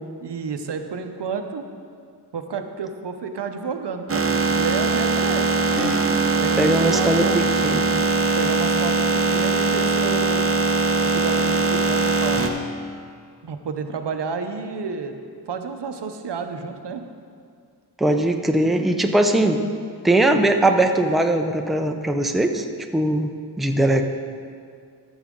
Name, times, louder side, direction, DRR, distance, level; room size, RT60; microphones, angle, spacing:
voice 1, 0.2-1.7 2.3-5.6 6.4-7.5 8.3-10.4 11.0-12.5 13.4-15.2 15.5-17.0 20.2-20.4 22.6-22.7, right 5 dB, 90° right, 6 dB, 0.7 m, -30 dB
sound 1, 4.1-12.5, right 3 dB, 35° right, 0.7 m, -21 dB
voice 2, 6.6-7.9 18.0-19.6 20.0-22.6 22.9-23.3 23.6-24.0, right 1 dB, ahead, 5 dB, 0.4 m, -20 dB
12.5 x 7.2 x 3.7 m, 2.2 s
wide cardioid pair, 100°, 40 cm